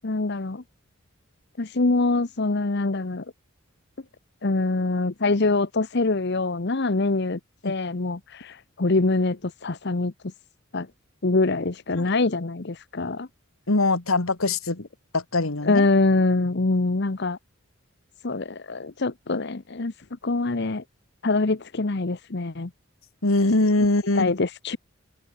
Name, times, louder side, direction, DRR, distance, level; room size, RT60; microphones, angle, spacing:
voice 1, 0.0-0.6 1.6-3.2 4.4-10.1 10.7-10.9 11.2-13.3 15.6-17.4 18.2-19.9 20.2-20.8 21.2-22.7 24.2-24.8, left 3 dB, 55° left, 1.0 m, -24 dB
voice 2, 13.7-14.8 15.1-15.9 23.2-24.3, left 2 dB, 90° left, 2.1 m, -22 dB
open air
head